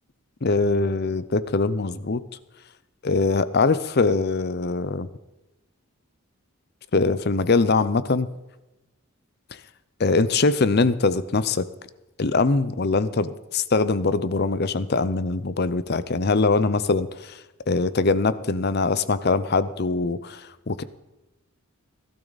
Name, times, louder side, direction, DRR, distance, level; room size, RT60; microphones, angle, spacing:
voice 1, 0.4-2.2 3.0-5.1 6.9-8.3 10.0-11.6 12.2-17.4 17.7-20.8, left 3 dB, 45° left, 15 dB, 0.6 m, -22 dB
17.5 x 12.5 x 4.0 m, 1.0 s
head